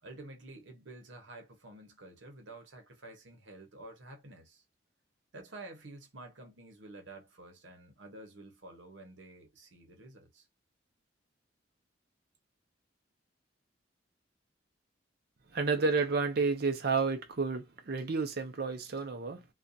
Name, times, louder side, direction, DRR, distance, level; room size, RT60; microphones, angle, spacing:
voice 1, 0.0-4.6 5.3-10.5, right 2 dB, 85° right, 0.9 m, -50 dB
voice 2, 15.5-19.5, right 4 dB, 55° right, 0.5 m, -31 dB
2.5 x 2.2 x 2.6 m
head